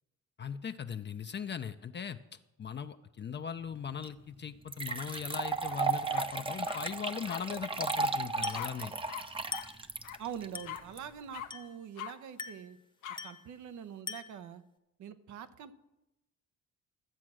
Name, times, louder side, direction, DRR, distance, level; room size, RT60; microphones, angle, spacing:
voice 1, 0.4-8.9, left 7 dB, 35° left, 9 dB, 0.6 m, -39 dB
sound 1, 4.0-4.1 4.7-11.0, right 4 dB, 20° right, 0.7 m, -34 dB
sound 2, 5.6-5.8 6.1-6.8 7.3-7.4 8.5-8.7 9.1-9.2 9.5-9.6 10.0-10.2 10.6-10.8 11.3-11.5 12.0-12.1 13.0-13.2, left 11 dB, 85° left, 0.9 m, -41 dB
Glass, 8.4-8.8 9.5-9.9 10.5-10.9 11.5-11.8 12.4-12.7 13.2-13.5 14.1-14.5, left 4 dB, 15° left, 0.9 m, -42 dB
voice 2, 10.2-12.8 13.2-14.6 15.0-15.7, right 8 dB, 75° right, 10 dB, 0.9 m, -44 dB
14.0 x 7.5 x 6.3 m, 0.94 s
cardioid pair, 90°, 30 cm